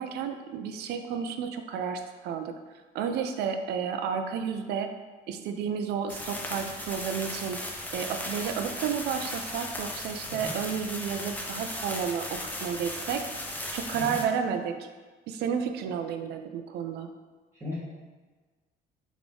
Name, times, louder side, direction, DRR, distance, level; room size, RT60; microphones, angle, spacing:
voice 1, 0.0-2.5 2.9-4.9 5.3-7.6 7.9-13.2 13.7-14.9 15.3-17.1, right 7 dB, 75° right, 7 dB, 0.5 m, -31 dB
sound 1, 6.1-14.2, left 1 dB, 10° left, 0.5 m, -37 dB
voice 2, 10.3-10.5 13.9-14.2 17.5-17.8, left 3 dB, 15° right, -8 dB, 1.3 m, -37 dB
3.6 x 3.5 x 3.7 m, 1.4 s
cardioid pair, 110°, 17 cm